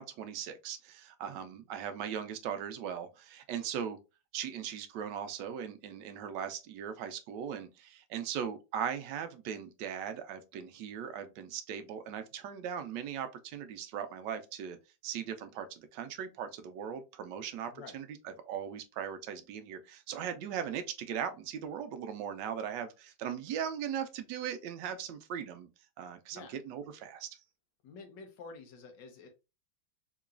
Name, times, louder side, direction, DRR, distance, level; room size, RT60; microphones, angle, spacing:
voice 1, 0.0-4.0 4.3-14.8 15.0-25.7 26.0-27.3, right 8 dB, 75° right, 1.1 m, -39 dB
voice 2, 27.8-29.3, left 4 dB, 70° left, 1.5 m, -49 dB
3.8 x 3.0 x 2.4 m
omnidirectional pair, 2.1 m